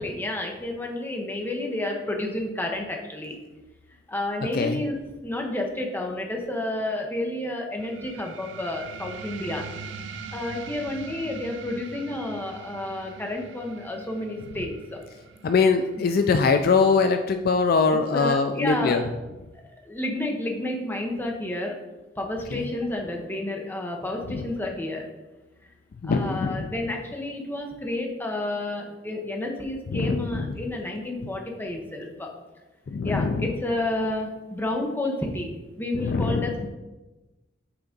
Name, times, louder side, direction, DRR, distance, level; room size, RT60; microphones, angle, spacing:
voice 1, 0.0-3.4 4.1-9.6 10.3-15.0 16.0-16.1 18.1-19.0 19.8-21.7 22.2-25.0 26.1-32.3 33.0-36.7, left 1 dB, 10° left, 1 dB, 0.9 m, -30 dB
sound 1, 7.8-18.8, right 5 dB, 70° right, 0.4 m, -43 dB
voice 2, 15.4-19.0 22.5-22.6 24.3-24.4 26.0-26.7 29.9-30.6 32.9-33.5 35.9-36.5, left 4 dB, 55° left, 7 dB, 0.3 m, -22 dB
5.9 x 3.9 x 5.2 m, 1.1 s
head